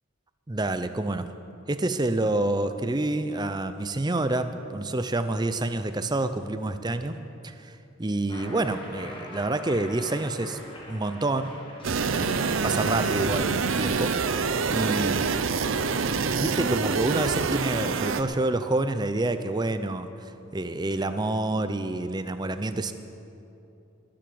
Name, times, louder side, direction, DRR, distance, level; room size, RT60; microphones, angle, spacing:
voice 1, 0.5-1.3 1.7-7.2 7.4-10.6 10.9-11.6 12.1-14.2 14.7-15.3 15.8-22.9, right 2 dB, 20° right, 10 dB, 0.6 m, -28 dB
Cheering, 8.3-14.2, left 1 dB, 25° left, 1.7 m, -44 dB
sound 1, 11.8-18.2, right 5 dB, 75° right, 0.6 m, -26 dB
20.5 x 7.7 x 7.0 m, 2.8 s
head